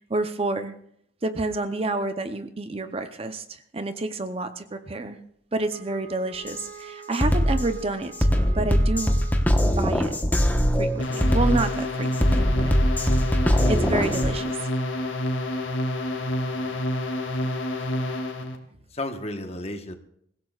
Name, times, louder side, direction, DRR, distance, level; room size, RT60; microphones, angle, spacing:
voice 1, 0.1-0.7 1.2-5.2 5.5-8.1 8.5-9.2 9.8-10.1 10.8-12.7 13.7-14.5, right 2 dB, 30° right, 9 dB, 0.7 m, -29 dB
Wind instrument woodwind instrument, 5.7-9.9, right 6 dB, 55° right, 3.4 m, -45 dB
Drum kit, 6.5-6.6 7.1-14.3, equal, 10° left, 1.1 m, -22 dB
sound 1, 11.0-18.6, left 1 dB, 80° left, 2.3 m, -28 dB
voice 2, 16.5-16.9 18.9-20.0, left 1 dB, 35° left, 6 dB, 1.2 m, -34 dB
25.0 x 16.5 x 2.4 m, 0.70 s
head